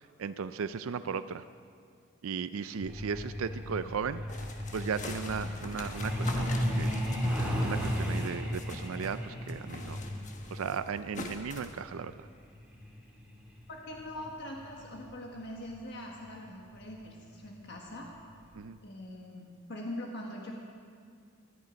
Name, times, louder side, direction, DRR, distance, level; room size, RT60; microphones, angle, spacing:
voice 1, 0.0-1.4 2.2-4.4 4.7-7.0 7.6-10.0 10.5-12.3 18.5-18.8, right 6 dB, 85° right, 13 dB, 0.4 m, -36 dB
Truck, 2.8-15.1 16.3-16.5 16.9-17.1 17.4-17.7 18.1-18.2 18.6-18.7, equal, 5° right, 2.2 m, -35 dB
sound 1, 4.3-9.2 9.5-11.8, left 3 dB, 35° left, 1.3 m, -44 dB
voice 2, 13.7-18.1 18.8-20.5, left 1 dB, 55° left, 0 dB, 1.5 m, -42 dB
19.0 x 12.0 x 5.2 m, 2.1 s
head